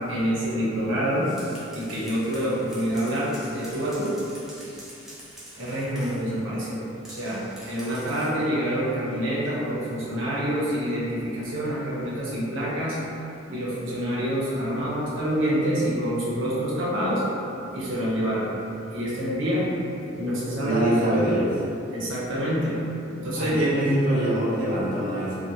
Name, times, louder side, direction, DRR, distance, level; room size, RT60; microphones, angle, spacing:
voice 1, 0.1-1.3 1.7-4.1 4.5-4.7 5.6-6.8 7.1-13.0 13.5-17.2 17.7-19.6 20.1-20.9 21.1-21.3 21.9-23.7, equal, 80° right, -7 dB, 0.8 m, -27 dB
sound 1, 1.1-6.3 7.0-8.4, equal, ahead, 0.4 m, -46 dB
voice 2, 20.6-21.6 23.4-25.4, right 1 dB, 45° right, -9 dB, 0.8 m, -24 dB
2.4 x 2.3 x 2.8 m, 2.7 s
head